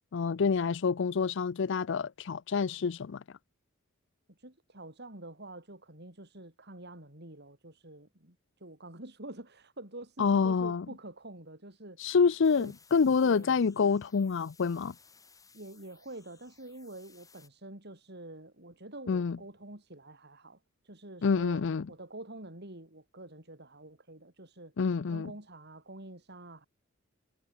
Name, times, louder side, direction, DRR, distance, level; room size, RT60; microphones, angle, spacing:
voice 1, 0.1-3.2 10.2-10.9 12.0-14.9 19.1-19.4 21.2-21.9 24.8-25.3, left 5 dB, 60° left, 0.5 m, -27 dB
voice 2, 4.4-12.0 12.6-12.7 13.2-13.6 15.5-20.6 20.8-24.7 25.1-26.7, right 1 dB, 55° right, 5.5 m, -47 dB
sound 1, 12.4-17.5, left 5 dB, 15° left, 6.6 m, -61 dB
head